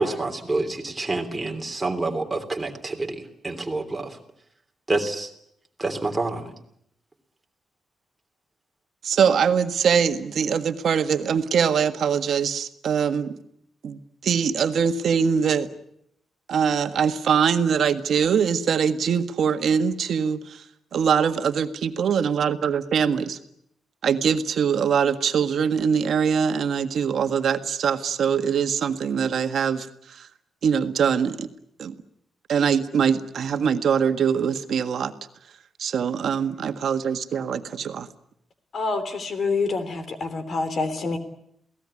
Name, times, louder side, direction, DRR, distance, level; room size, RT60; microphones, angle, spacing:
voice 1, 0.0-4.2 4.9-5.3 5.8-6.5, right 2 dB, 10° right, 2 dB, 3.1 m, -27 dB
voice 2, 9.0-13.4 13.8-15.7 16.5-20.6 20.9-23.4 24.0-30.3 30.6-31.5 31.8-31.9 32.5-35.1 35.8-38.1, right 7 dB, 55° right, 8 dB, 1.6 m, -23 dB
voice 3, 38.7-41.2, left 3 dB, 40° left, 12 dB, 3.2 m, -27 dB
28.5 x 18.0 x 9.8 m, 0.74 s
wide cardioid pair, 170°, 0 cm